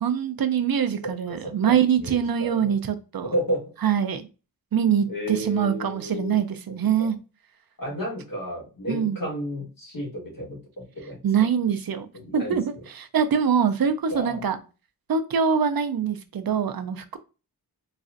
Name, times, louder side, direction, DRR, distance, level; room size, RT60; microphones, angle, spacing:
voice 1, 0.0-3.3 3.8-4.3 4.7-7.2 8.9-9.2 11.2-12.1 12.3-14.6 15.1-17.2, right 7 dB, 65° right, 10 dB, 0.5 m, -24 dB
voice 2, 1.0-2.7 3.2-3.6 5.1-6.4 7.0-7.1 7.8-11.2 12.1-12.6 14.1-14.4, equal, 60° left, -3 dB, 1.5 m, -32 dB
4.1 x 2.4 x 2.4 m, 0.33 s
wide cardioid pair, 65°, 38 cm